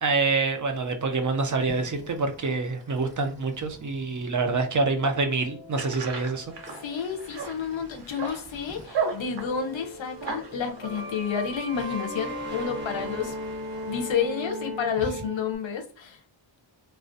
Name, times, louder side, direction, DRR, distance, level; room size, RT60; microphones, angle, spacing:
voice 1, 0.0-6.5, right 3 dB, 45° right, 0.4 m, -26 dB
sound 1, 1.7-8.9 9.1-15.6, equal, 25° right, 1.0 m, -39 dB
sound 2, 5.7-14.0, right 5 dB, 65° right, 0.8 m, -37 dB
voice 2, 6.8-13.3 13.9-16.2, left 7 dB, 70° left, 0.6 m, -30 dB
2.4 x 2.1 x 2.5 m
wide cardioid pair, 130°, 47 cm